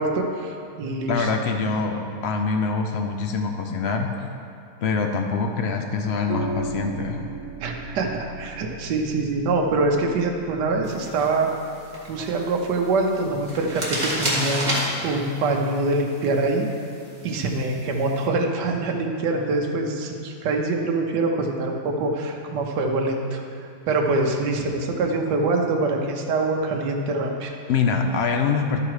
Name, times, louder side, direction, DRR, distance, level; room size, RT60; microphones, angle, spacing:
voice 1, 0.0-1.3 7.6-11.5 12.1-14.7 15.0-16.7 17.2-23.4 23.9-27.5, right 3 dB, 80° right, 1 dB, 1.4 m, -24 dB
voice 2, 1.1-4.3 4.8-7.2 27.7-28.8, left 5 dB, 75° left, 4 dB, 0.6 m, -24 dB
sound 1, 6.3-14.8, right 4 dB, 60° right, 1.0 m, -38 dB
sound 2, 10.8-18.3, right 1 dB, 25° right, 1.8 m, -32 dB
12.5 x 4.9 x 4.8 m, 2.5 s
omnidirectional pair, 1.8 m